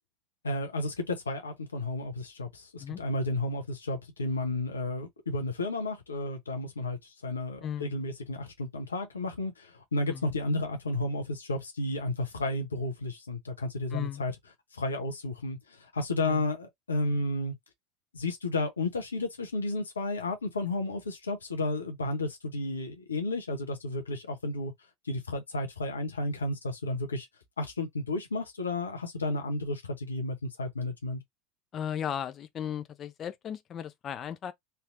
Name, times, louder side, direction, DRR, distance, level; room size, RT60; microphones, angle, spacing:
voice 1, 0.4-14.3 14.7-17.5 18.1-24.7 25.0-27.3 27.6-31.2, left 2 dB, 85° left, 0.8 m, -32 dB
voice 2, 13.9-14.2 16.2-16.4 31.7-34.5, left 9 dB, 35° left, 0.6 m, -36 dB
3.3 x 2.8 x 2.5 m
figure-of-eight pair, 80°, 0 cm